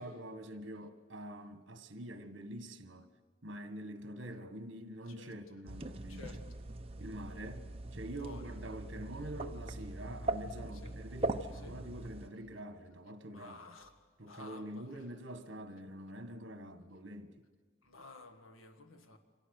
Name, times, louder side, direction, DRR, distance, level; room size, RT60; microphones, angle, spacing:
voice 1, 0.0-3.1 3.4-6.4 7.0-13.6 14.2-17.3, right 1 dB, 65° right, 1.6 m, -46 dB
sound 1, 5.7-12.3, right 2 dB, 30° right, 0.9 m, -41 dB
voice 2, 6.1-6.4 8.2-8.5 10.8-11.0 11.6-11.8 13.3-13.9 14.2-14.8 17.8-19.2, left 3 dB, 85° left, 1.8 m, -52 dB
28.0 x 25.0 x 6.6 m
head